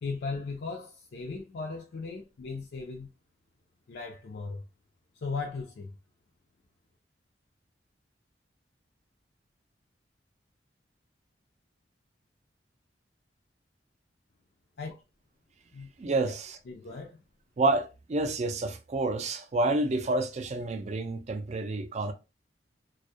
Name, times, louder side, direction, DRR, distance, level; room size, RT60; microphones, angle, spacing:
voice 1, 0.0-3.1 3.9-4.6 5.2-5.9 14.8-14.9 15.7-15.9 16.2-16.3 16.7-17.2, left 4 dB, 65° left, 0.4 m, -37 dB
voice 2, 16.0-16.6 17.6-22.1, right 2 dB, 40° right, 0.4 m, -29 dB
2.2 x 2.1 x 2.6 m
head